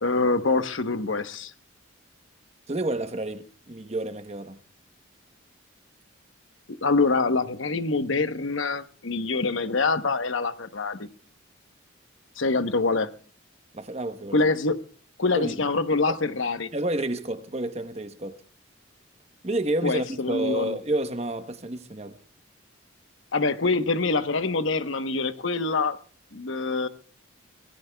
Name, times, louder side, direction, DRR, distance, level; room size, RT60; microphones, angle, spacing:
voice 1, 0.0-1.5 6.7-11.1 12.4-13.1 14.3-14.8 15.2-16.7 19.8-20.8 23.3-26.0 26.3-26.9, left 3 dB, 65° left, 1.0 m, -25 dB
voice 2, 2.7-4.6 13.7-14.4 15.3-15.6 16.1-16.2 16.7-18.4 19.4-22.2, right 1 dB, 30° right, 1.0 m, -30 dB
25.0 x 18.0 x 2.3 m
head